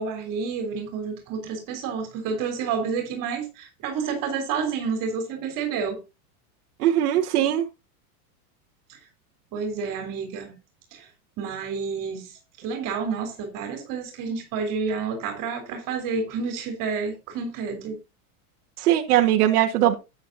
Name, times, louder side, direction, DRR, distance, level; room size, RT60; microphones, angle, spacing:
voice 1, 0.0-6.0 8.9-9.0 9.5-10.6 10.9-11.1 11.4-12.4 12.6-18.0, right 5 dB, 45° right, 3.5 m, -29 dB
voice 2, 6.8-7.7 18.8-19.9, right 12 dB, 75° right, 1.6 m, -20 dB
13.0 x 9.2 x 2.7 m
supercardioid pair, 125°, 45 cm